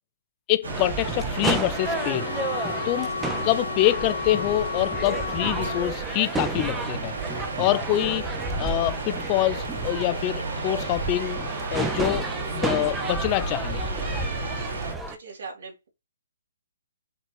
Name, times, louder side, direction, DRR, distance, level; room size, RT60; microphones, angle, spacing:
voice 1, 0.5-2.3 2.8-3.1 3.4-7.1 7.6-8.3 8.6-13.8, left 15 dB, 25° left, 0.6 m, -26 dB
sound 1, 0.6-14.9, right 3 dB, 75° right, 3.5 m, -34 dB
sound 2, 0.7-15.2, right 3 dB, 10° right, 0.8 m, -32 dB
sound 3, 1.7-5.9, left 5 dB, 80° left, 2.5 m, -32 dB
voice 2, 15.1-15.9, right 4 dB, 55° right, 4.0 m, -41 dB
7.5 x 4.4 x 3.2 m
hypercardioid pair, 155°, 0 cm